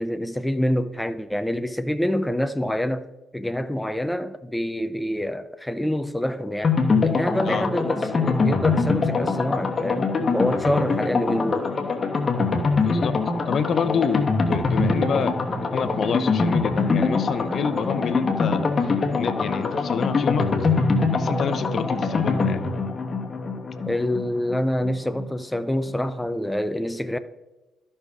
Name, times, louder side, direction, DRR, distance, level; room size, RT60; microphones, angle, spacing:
voice 1, 0.0-3.1 3.3-11.7 23.9-27.2, left 1 dB, 5° left, 0.4 m, -26 dB
sound 1, 6.6-25.3 25.5-25.6 25.9-26.0, left 4 dB, 35° left, 1.2 m, -23 dB
voice 2, 12.8-13.1 13.4-15.4 15.7-20.5 21.1-22.7, left 6 dB, 55° left, 0.6 m, -28 dB
13.5 x 5.5 x 3.6 m
cardioid pair, 90°, 0 cm